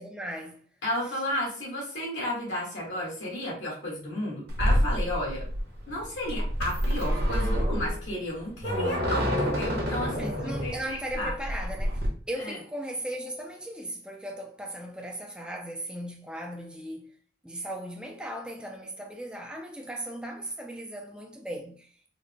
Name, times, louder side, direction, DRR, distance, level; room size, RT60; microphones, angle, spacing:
voice 1, 0.0-0.6 10.2-12.0 12.3-17.1 17.4-21.9, right 1 dB, 5° right, 0.3 m, -37 dB
voice 2, 0.8-5.5 5.9-11.3 12.4-12.6, left 1 dB, 85° left, 1.5 m, -33 dB
sound 1, 4.5-12.1, equal, 60° right, 1.1 m, -28 dB
3.8 x 2.1 x 3.2 m
head